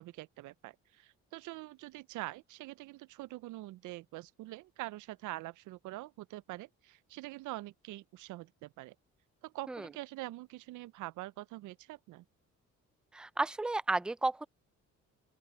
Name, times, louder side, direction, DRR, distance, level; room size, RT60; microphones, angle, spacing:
voice 1, 0.0-9.0 9.4-12.2, right 18 dB, 80° right, 0.5 m, -45 dB
voice 2, 13.1-14.5, right 2 dB, 5° right, 0.4 m, -32 dB
open air
cardioid pair, 90°, 30 cm